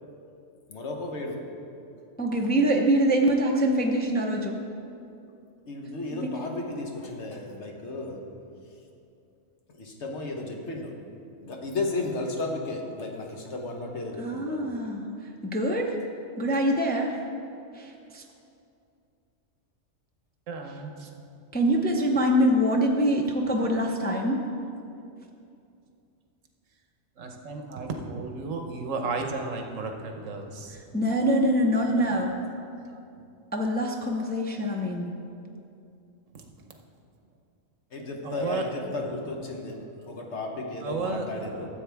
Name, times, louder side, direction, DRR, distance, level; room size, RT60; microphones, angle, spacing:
voice 1, 0.7-1.5 5.7-8.2 9.7-10.9 11.4-14.6 37.9-39.8 40.1-41.7, left 2 dB, 65° left, 1 dB, 1.3 m, -34 dB
voice 2, 2.2-4.6 6.2-6.3 14.2-15.0 15.5-15.9 16.4-17.1 17.8-18.2 21.5-23.2 23.5-24.4 30.9-32.3 33.5-35.1, equal, 10° left, 0 dB, 0.4 m, -24 dB
voice 3, 20.5-21.1 27.2-30.8 31.0-31.1 31.6-32.2 32.9-33.0 36.3-36.8 38.2-39.0 40.8-41.7, right 3 dB, 85° right, 3 dB, 1.3 m, -34 dB
13.5 x 7.7 x 3.4 m, 2.6 s
omnidirectional pair, 1.3 m